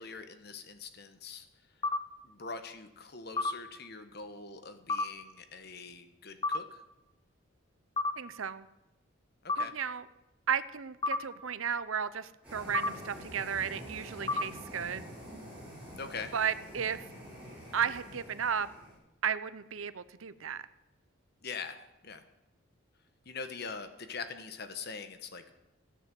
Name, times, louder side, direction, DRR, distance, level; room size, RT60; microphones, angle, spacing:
voice 1, 0.0-1.5 2.2-6.8 9.4-9.7 16.0-16.3 21.4-21.8 22.0-22.2 23.2-25.6, left 4 dB, 50° left, 9 dB, 1.3 m, -43 dB
sound 1, 1.8-2.0 3.4-3.5 4.9-5.0 6.4-6.6 8.0-8.1 9.5-9.6 11.0-11.2 12.7-12.9 14.3-14.4, left 3 dB, 20° left, 0.7 m, -28 dB
voice 2, 8.2-8.7 9.6-10.0 10.5-15.0 16.3-17.0 17.7-18.7 19.2-20.6, right 7 dB, 75° right, 14 dB, 0.7 m, -34 dB
sound 2, 12.4-18.9, equal, 5° right, 6.8 m, -47 dB
13.5 x 10.0 x 7.7 m, 0.94 s
head